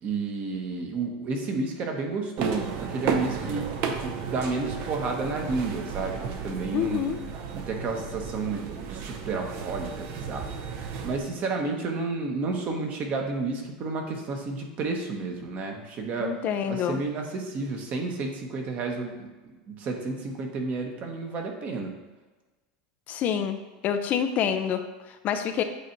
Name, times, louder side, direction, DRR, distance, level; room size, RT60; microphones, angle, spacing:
voice 1, 0.0-3.7 4.0-7.1 7.5-16.3 16.7-21.9, right 3 dB, 40° right, 2 dB, 1.1 m, -31 dB
sound 1, 2.4-11.2, right 6 dB, 55° right, 0.7 m, -33 dB
voice 2, 6.7-7.2 16.2-17.0 23.1-23.6 23.8-25.6, left 8 dB, 40° left, 8 dB, 0.4 m, -27 dB
8.2 x 2.8 x 4.5 m, 1.2 s
supercardioid pair, 125°, 4 cm